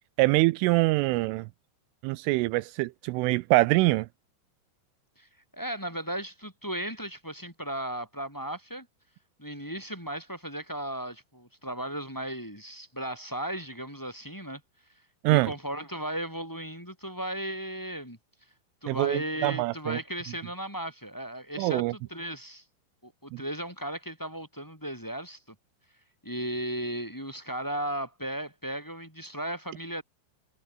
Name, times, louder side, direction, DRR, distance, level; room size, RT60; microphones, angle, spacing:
voice 1, 0.2-1.5 2.0-4.1 15.2-15.5 18.9-20.0 21.6-21.9 23.3-23.4, right 21 dB, 85° right, 3.1 m, -24 dB
voice 2, 5.5-8.9 9.4-14.6 15.3-18.2 18.8-22.6 23.0-25.4 26.2-30.0, right 1 dB, 5° left, 5.6 m, -36 dB
omnidirectional pair, 5.8 m